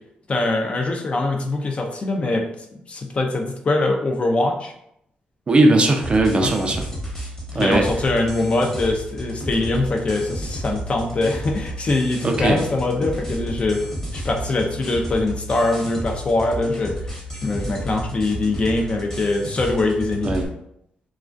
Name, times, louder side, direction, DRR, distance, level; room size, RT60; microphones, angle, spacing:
voice 1, 0.3-4.7 6.4-6.5 7.5-13.8 14.1-17.0 17.4-20.3, left 2 dB, 40° left, 2 dB, 0.4 m, -23 dB
voice 2, 5.5-6.9 7.5-7.9 12.2-12.6 20.2-20.5, right 2 dB, 35° right, 3 dB, 0.4 m, -18 dB
sound 1, 6.0-20.5, equal, 20° left, 0.9 m, -32 dB
2.3 x 2.2 x 2.4 m, 0.76 s
cardioid pair, 100°, 3 cm